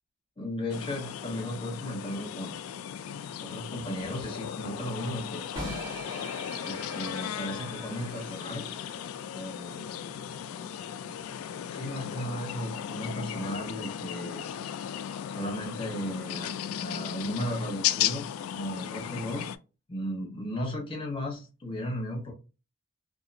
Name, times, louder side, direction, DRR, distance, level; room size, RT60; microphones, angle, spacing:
voice 1, 0.4-2.5 3.4-5.5 6.6-8.7 9.3-9.8 11.7-14.4 15.3-19.5 19.9-22.3, equal, 25° left, 1.0 m, -35 dB
sound 1, 0.7-19.6, left 10 dB, 90° left, 0.3 m, -36 dB
sound 2, 5.5-11.5, right 1 dB, 20° right, 1.2 m, -45 dB
2.7 x 2.5 x 2.5 m
head